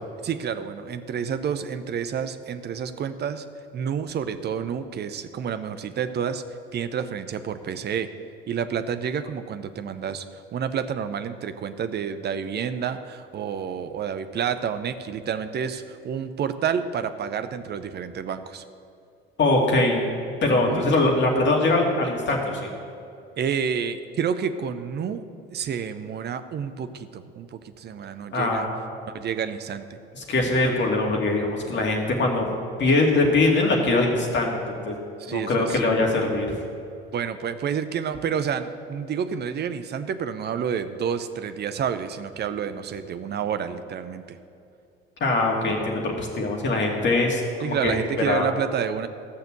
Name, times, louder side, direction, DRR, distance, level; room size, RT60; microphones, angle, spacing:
voice 1, 0.2-3.5 3.7-6.4 6.7-8.1 8.5-18.6 20.5-20.8 23.4-25.2 25.5-28.7 29.1-29.8 35.2-36.0 37.1-44.4 47.6-49.1, right 7 dB, 35° right, 10 dB, 0.8 m, -29 dB
voice 2, 19.4-20.0 20.4-22.7 28.3-28.7 30.1-32.5 32.8-35.0 35.3-36.5 45.2-48.0 48.2-48.4, left 2 dB, 35° left, 0 dB, 2.5 m, -22 dB
14.5 x 6.6 x 7.9 m, 2.6 s
figure-of-eight pair, 55°, 30 cm